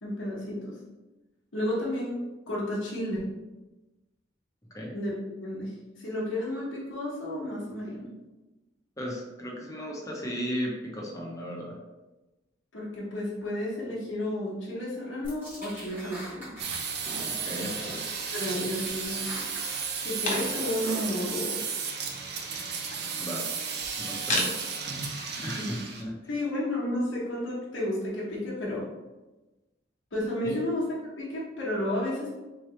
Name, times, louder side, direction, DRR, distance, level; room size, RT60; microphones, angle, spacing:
voice 1, 0.0-0.8 1.5-2.2 2.5-3.3 4.9-5.1 5.4-8.1 12.7-16.5 18.3-19.4 20.0-21.6 25.3-25.8 26.3-28.9 30.1-30.9 31.2-32.4, left 1 dB, 80° left, -6 dB, 1.2 m, -32 dB
voice 2, 9.0-11.8 17.3-18.0 23.2-23.5 24.0-24.7 25.4-26.1 30.4-30.6, equal, 15° left, -2 dB, 0.7 m, -35 dB
sound 1, 15.2-16.8 17.1-18.0 18.3-19.9 20.2-21.1, right 1 dB, 10° right, 1.3 m, -42 dB
sound 2, 16.6-26.0, right 5 dB, 60° right, 0.6 m, -34 dB
sound 3, 16.7-18.0 18.4-19.1 19.6-20.9 21.2-21.3 21.5-24.8, left 2 dB, 45° left, 0.9 m, -36 dB
3.7 x 3.2 x 3.1 m, 1.1 s
head